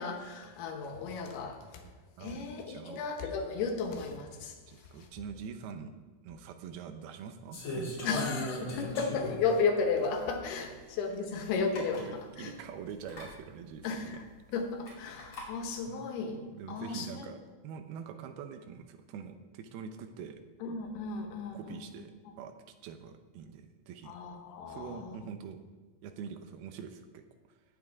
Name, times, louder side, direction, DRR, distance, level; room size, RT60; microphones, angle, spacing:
voice 1, 0.0-1.8 2.2-4.5 8.0-12.0 12.4-12.5 13.8-14.2 14.5-16.4 16.7-17.3 20.6-21.8 24.1-25.3, left 4 dB, 80° left, 4 dB, 3.2 m, -34 dB
voice 2, 2.2-3.0 4.7-5.9 6.2-8.2 11.8-14.2 15.9-16.1 16.6-20.4 21.5-22.6 22.8-24.2 24.7-25.6 26.0-27.2, right 7 dB, 80° right, 8 dB, 2.7 m, -44 dB
sound 1, 7.5-9.5 10.1-10.2 11.4-11.5 11.7-12.1 13.0-13.3 14.8-15.5, left 1 dB, 35° left, 3.2 m, -38 dB
17.5 x 8.6 x 3.6 m, 1.3 s
omnidirectional pair, 4.5 m